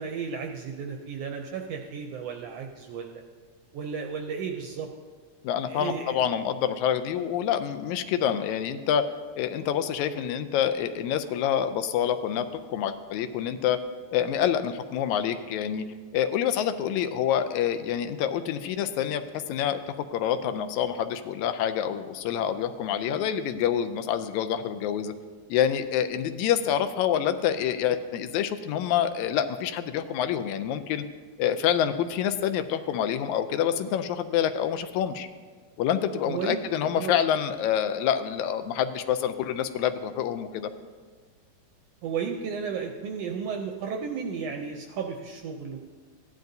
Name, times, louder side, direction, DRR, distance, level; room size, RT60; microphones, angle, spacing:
voice 1, 0.0-3.1 3.7-4.9 5.7-6.2 36.2-36.6 37.0-37.2 42.0-45.8, right 6 dB, 80° right, 3 dB, 1.5 m, -33 dB
voice 2, 5.4-9.0 9.4-13.8 14.1-15.9 16.1-19.2 19.5-25.1 25.5-31.0 31.4-35.3 35.8-40.7, left 9 dB, 80° left, 9 dB, 1.9 m, -27 dB
15.5 x 10.5 x 2.7 m, 1.5 s
omnidirectional pair, 3.4 m